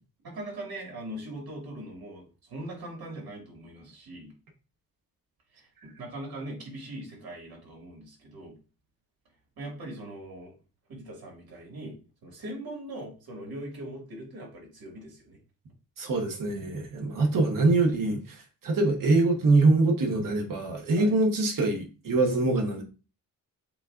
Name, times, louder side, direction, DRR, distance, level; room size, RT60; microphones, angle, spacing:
voice 1, 0.2-4.3 5.5-8.6 9.6-10.5 10.9-12.0 12.2-15.4 21.0-21.2, right 1 dB, 80° right, 2.2 m, -41 dB
voice 2, 16.0-18.4 18.6-22.8, right 2 dB, 60° right, 1.2 m, -24 dB
7.3 x 2.5 x 2.4 m
wide cardioid pair, 130°, 36 cm